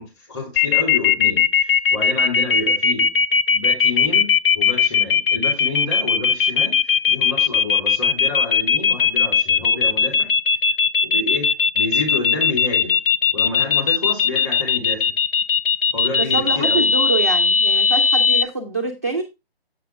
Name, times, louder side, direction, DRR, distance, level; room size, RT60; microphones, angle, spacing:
voice 1, 0.0-3.1 3.5-10.3 11.0-13.0 13.3-15.1 15.9-16.9, left 2 dB, 25° left, 3.2 m, -29 dB
sound 1, 0.6-18.4, left 6 dB, 60° left, 0.6 m, -17 dB
voice 2, 16.2-19.2, right 3 dB, 15° right, 0.4 m, -25 dB
7.3 x 6.0 x 3.5 m
figure-of-eight pair, 145°, 31 cm